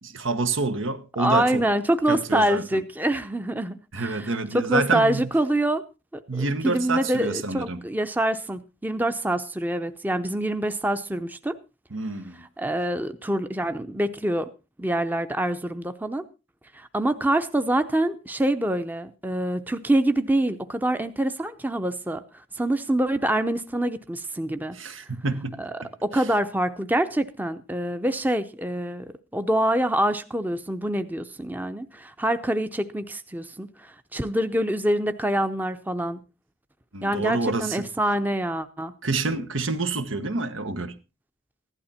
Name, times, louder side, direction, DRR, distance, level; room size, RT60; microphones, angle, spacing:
voice 1, 0.0-1.6 2.1-2.8 3.9-5.3 6.3-7.8 11.9-12.4 24.7-25.6 26.1-26.2 36.9-37.8 39.0-40.9, right 3 dB, 85° right, 1.5 m, -27 dB
voice 2, 1.2-5.8 6.1-11.6 12.6-14.5 14.8-16.2 16.7-24.8 25.6-25.7 26.0-36.2 37.0-38.9, right 1 dB, 10° right, 0.6 m, -25 dB
15.5 x 11.5 x 4.3 m
head